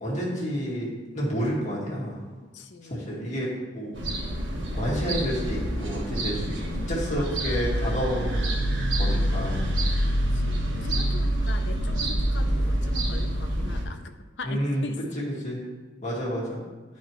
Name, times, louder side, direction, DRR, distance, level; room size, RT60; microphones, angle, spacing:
voice 1, 0.0-2.2 2.9-3.9 4.7-6.6 6.9-8.5 9.0-9.7 11.8-12.1 14.4-14.9 15.1-15.6 16.0-16.6, equal, 40° left, -5 dB, 1.9 m, -30 dB
voice 2, 2.5-3.3 7.1-7.9 10.3-15.0, left 3 dB, 70° left, 6 dB, 0.6 m, -42 dB
sound 1, 3.9-13.8, equal, 85° right, 1.3 m, -26 dB
10.5 x 4.3 x 3.1 m, 1.3 s
head